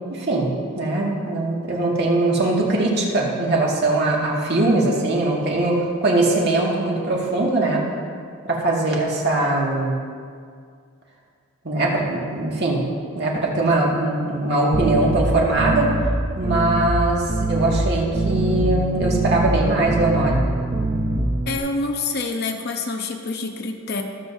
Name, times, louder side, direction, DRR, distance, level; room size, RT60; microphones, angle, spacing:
voice 1, 0.1-0.5 0.8-7.9 8.4-10.0 11.6-12.8 13.1-15.9 16.4-20.5, right 2 dB, 50° right, -3 dB, 2.0 m, -21 dB
sound 1, 14.7-21.6, right 2 dB, 25° right, 0.6 m, -23 dB
voice 2, 21.5-24.0, left 3 dB, 50° left, 3 dB, 0.8 m, -27 dB
22.5 x 7.6 x 2.7 m, 2.1 s
head